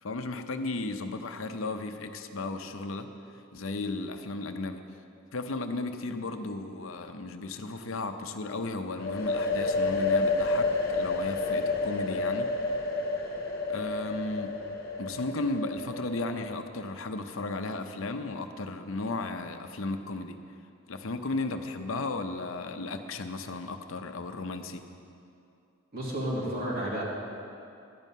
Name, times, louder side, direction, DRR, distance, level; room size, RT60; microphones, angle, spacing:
voice 1, 0.0-3.1 3.5-4.8 5.3-12.5 13.7-14.6 15.0-20.4 20.9-24.8, left 2 dB, 75° left, 7 dB, 0.7 m, -35 dB
sound 1, 9.0-16.6, left 3 dB, 50° left, 1.3 m, -30 dB
voice 2, 25.9-27.0, right 1 dB, 50° right, -6 dB, 3.0 m, -31 dB
12.5 x 5.5 x 9.2 m, 2.6 s
head